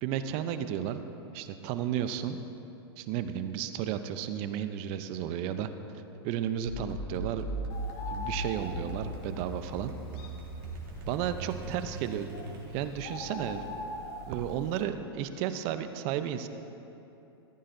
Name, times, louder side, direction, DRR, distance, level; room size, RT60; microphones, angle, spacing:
voice 1, 0.0-1.0 1.3-2.4 3.0-5.7 6.2-7.5 8.1-9.9 11.1-12.3 12.7-13.6 14.2-16.5, right 10 dB, 45° right, 10 dB, 0.7 m, -33 dB
sound 1, 6.7-13.0, right 2 dB, 65° right, 2.8 m, -39 dB
Bird, 7.7-14.8, left 2 dB, 55° left, 2.0 m, -43 dB
14.5 x 14.5 x 2.7 m, 2.9 s
hypercardioid pair, 110°, 13 cm